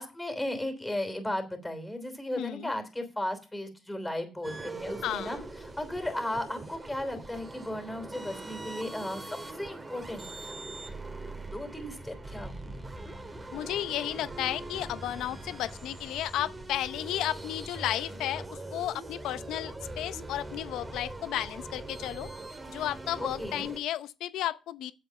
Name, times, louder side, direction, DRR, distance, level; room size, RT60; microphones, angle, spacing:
voice 1, 0.0-10.5 11.3-12.8 23.2-23.7, left 1 dB, 10° left, 3.2 m, -36 dB
voice 2, 2.4-2.7 5.0-5.4 13.5-22.3 22.7-24.9, left 12 dB, 85° left, 0.6 m, -33 dB
sound 1, 4.4-23.8, right 2 dB, 25° right, 2.4 m, -42 dB
9.0 x 7.4 x 5.8 m
cardioid pair, 90°, 0 cm